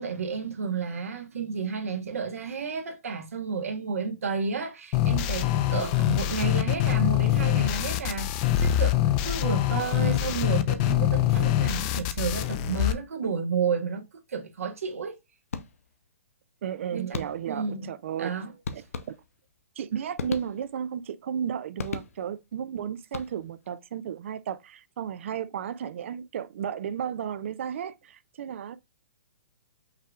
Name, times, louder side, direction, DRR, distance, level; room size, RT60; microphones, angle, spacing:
voice 1, 0.0-14.0 14.3-15.1 16.9-17.9 18.2-18.5, right 5 dB, 85° right, 1.2 m, -31 dB
sound 1, 4.9-12.9, left 12 dB, 35° left, 0.5 m, -24 dB
sound 2, 15.5-16.1 17.1-17.7 18.6-19.5 20.1-20.9 21.8-22.5 23.0-23.7, left 5 dB, 85° left, 0.7 m, -37 dB
voice 2, 16.6-18.3 18.7-18.8 19.8-28.8, right 8 dB, 60° right, 0.4 m, -34 dB
5.6 x 3.4 x 2.3 m
hypercardioid pair, 145°, 7 cm